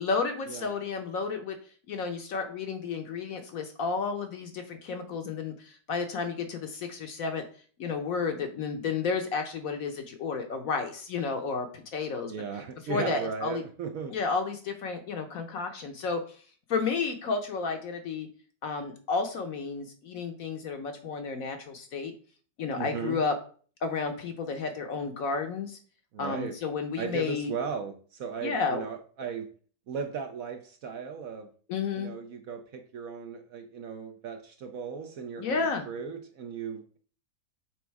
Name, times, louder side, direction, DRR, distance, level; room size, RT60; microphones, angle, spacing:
voice 1, 0.0-1.6 1.9-7.4 7.8-12.3 12.9-13.6 14.1-16.4 16.7-18.3 18.6-22.1 22.6-23.3 23.8-25.8 26.2-27.5 28.4-28.8 31.7-32.1 35.4-35.9, left 4 dB, 60° left, 5 dB, 1.0 m, -32 dB
voice 2, 12.3-14.1 22.7-23.2 26.1-26.5 27.0-29.5 29.9-31.5 32.0-37.0, right 6 dB, 65° right, 6 dB, 0.9 m, -36 dB
6.2 x 3.5 x 4.6 m, 0.43 s
omnidirectional pair, 1.9 m